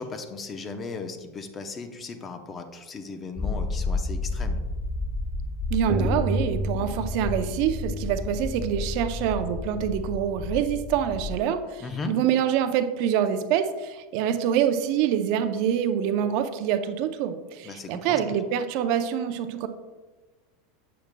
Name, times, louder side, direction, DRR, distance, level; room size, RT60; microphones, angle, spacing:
voice 1, 0.0-4.6 11.8-12.1 17.6-18.2, left 4 dB, 30° left, 7 dB, 0.7 m, -36 dB
sound 1, 3.4-11.4, left 2 dB, 5° left, 0.4 m, -30 dB
voice 2, 5.7-19.7, right 9 dB, 60° right, 9 dB, 0.5 m, -26 dB
7.6 x 6.5 x 2.2 m, 1.2 s
supercardioid pair, 115°, 0 cm